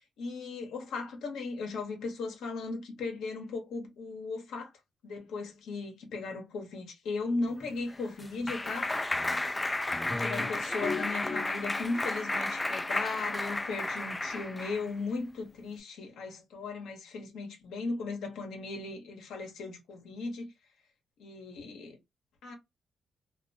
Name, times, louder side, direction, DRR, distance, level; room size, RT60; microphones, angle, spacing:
voice 1, 0.2-4.7 5.0-9.0 10.1-20.5 21.2-22.0 22.4-22.5, left 3 dB, 80° left, 0.8 m, -37 dB
Clapping, 7.6-14.9, left 2 dB, 20° left, 0.3 m, -32 dB
2.3 x 2.1 x 2.6 m
supercardioid pair, 70°, 0 cm